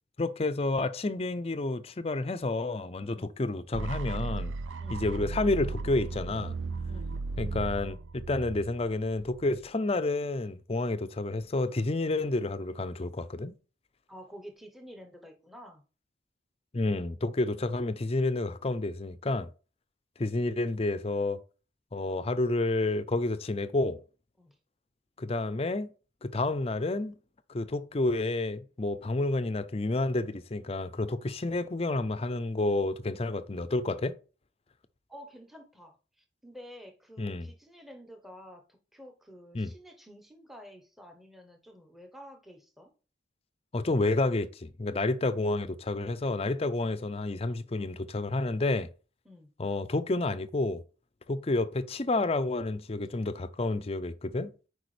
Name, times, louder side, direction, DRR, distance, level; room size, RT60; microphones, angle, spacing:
voice 1, 0.2-4.5 4.9-6.6 7.4-13.5 16.7-19.5 20.2-21.4 21.9-24.0 25.2-25.9 26.2-27.1 27.5-34.1 37.2-37.5 39.5-39.7 43.7-48.9 49.6-50.8 51.3-54.5, left 2 dB, 30° left, 0.5 m, -30 dB
sound 1, 3.7-9.7, right 3 dB, 80° right, 0.5 m, -36 dB
voice 2, 6.9-7.2 14.1-15.8 24.4-24.6 35.1-42.9 49.2-49.5, equal, ahead, 0.9 m, -50 dB
8.1 x 5.0 x 3.2 m
head